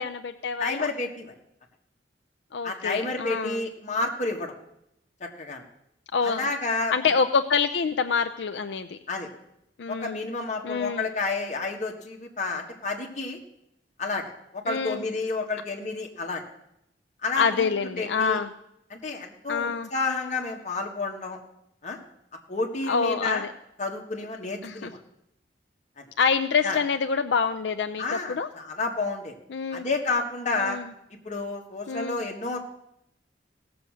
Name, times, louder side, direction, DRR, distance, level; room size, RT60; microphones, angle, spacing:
voice 1, 0.0-0.9 2.5-3.6 6.1-6.5 6.9-9.0 9.8-10.3 10.6-11.1 14.7-15.0 17.3-18.5 19.5-19.9 22.9-23.5 24.6-24.9 26.2-28.5 29.5-29.9 30.6-30.9 31.9-32.2, left 5 dB, 80° left, 8 dB, 0.5 m, -26 dB
voice 2, 0.6-1.3 2.6-4.5 5.2-5.6 6.2-6.9 9.1-9.3 9.9-13.4 14.0-16.4 17.2-17.7 18.0-18.4 18.9-21.4 21.8-22.0 22.5-23.4 23.8-25.0 26.0-26.1 26.6-26.8 28.0-29.4 29.7-30.8 31.2-32.6, left 3 dB, 45° left, 1 dB, 1.7 m, -30 dB
16.5 x 7.0 x 6.3 m, 0.79 s
head